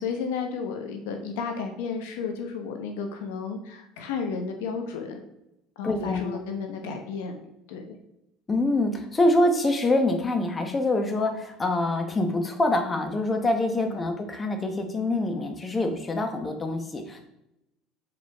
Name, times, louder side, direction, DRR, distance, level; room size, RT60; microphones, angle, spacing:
voice 1, 0.0-5.2 5.8-7.4 7.7-8.0 13.8-14.0, left 5 dB, 85° left, 5 dB, 1.0 m, -33 dB
voice 2, 5.8-6.4 8.5-17.2, left 2 dB, 20° left, 5 dB, 1.0 m, -25 dB
6.6 x 5.1 x 3.5 m, 0.86 s
supercardioid pair, 100°, 0 cm